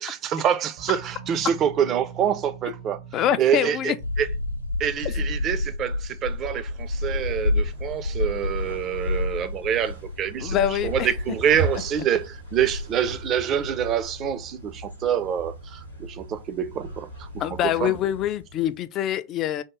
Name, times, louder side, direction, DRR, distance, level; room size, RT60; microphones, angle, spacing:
voice 1, 0.0-4.3 4.8-18.0, right 9 dB, 30° right, 0.5 m, -26 dB
sound 1, 0.8-7.1, right 6 dB, 60° right, 0.8 m, -44 dB
voice 2, 3.1-4.0 10.4-11.1 17.4-19.6, left 11 dB, 35° left, 0.3 m, -25 dB
sound 2, 4.0-18.8, left 2 dB, 85° left, 0.6 m, -31 dB
sound 3, 6.7-18.4, right 2 dB, 80° right, 2.1 m, -38 dB
3.5 x 2.3 x 3.1 m
figure-of-eight pair, 90°, 0 cm